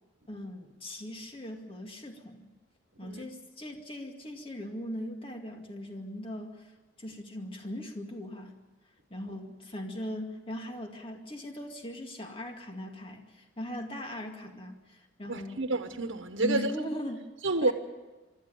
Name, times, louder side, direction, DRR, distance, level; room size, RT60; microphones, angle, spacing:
voice 1, 0.3-2.5 3.0-8.6 9.1-15.6 16.4-17.2 17.6-17.7, left 1 dB, 30° left, 2.2 m, -39 dB
voice 2, 15.3-16.7 17.4-17.7, right 3 dB, 85° right, 1.1 m, -29 dB
24.0 x 13.5 x 9.3 m
head